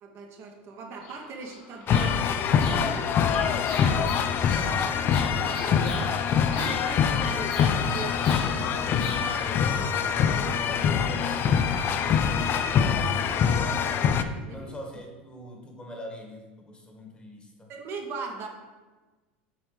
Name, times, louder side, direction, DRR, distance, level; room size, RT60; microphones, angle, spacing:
voice 1, 0.0-4.3 4.9-11.2 11.9-14.7 17.7-18.5, right 4 dB, 45° right, 2 dB, 1.0 m, -41 dB
Bird vocalization bird call bird song, 0.9-9.5, left 3 dB, 65° left, 1.6 m, -42 dB
sound 1, 1.9-14.2, left 7 dB, 40° left, 0.4 m, -24 dB
voice 2, 3.8-4.1 4.5-4.9 14.4-17.7, equal, 15° left, 2 dB, 1.5 m, -42 dB
7.8 x 3.2 x 4.9 m, 1.3 s
hypercardioid pair, 95°, 6 cm